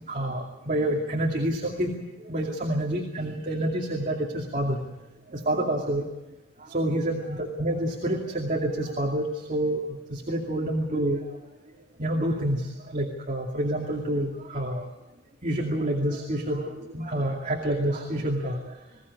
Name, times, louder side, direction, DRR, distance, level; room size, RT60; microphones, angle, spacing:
voice 1, 0.1-4.8 5.3-6.0 6.6-11.4 12.0-14.9 15.4-18.8, right 1 dB, 40° right, 0 dB, 2.5 m, -28 dB
22.0 x 16.5 x 9.7 m, 1.0 s
head